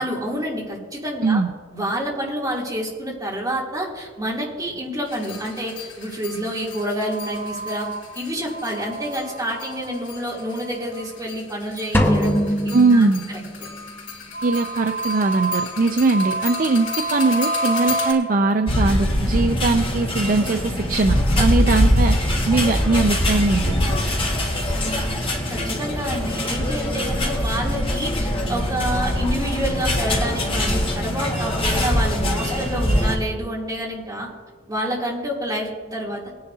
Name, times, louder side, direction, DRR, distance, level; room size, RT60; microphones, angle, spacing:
voice 1, 0.0-1.4 1.7-7.9 8.1-12.3 12.9-13.1 21.4-21.5 24.7-25.2 25.5-34.3 34.7-36.2, equal, 20° right, -5 dB, 2.9 m, -28 dB
sound 1, 5.1-11.3 11.7-18.1, equal, 65° left, 3.6 m, -29 dB
sound 2, 11.9-13.7, equal, 10° left, 0.8 m, -21 dB
voice 2, 12.7-13.2 14.4-22.2 22.5-23.8, right 3 dB, 45° right, 7 dB, 0.5 m, -20 dB
sound 3, 18.7-33.2, equal, 30° left, 1.8 m, -22 dB
20.0 x 10.5 x 2.8 m, 1.4 s
head